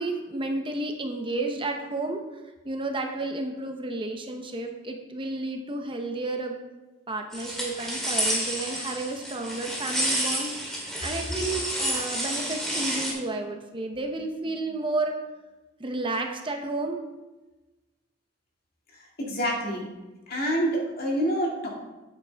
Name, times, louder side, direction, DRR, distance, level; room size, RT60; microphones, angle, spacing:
voice 1, 0.0-6.6 7.1-10.5 11.0-15.2 15.8-17.0, right 2 dB, 25° right, 4 dB, 0.8 m, -31 dB
sound 1, 7.3-13.1, equal, ahead, 2.2 m, -30 dB
voice 2, 19.2-19.9 20.3-21.7, equal, 50° left, -2 dB, 2.2 m, -27 dB
8.7 x 8.7 x 3.4 m, 1.1 s
head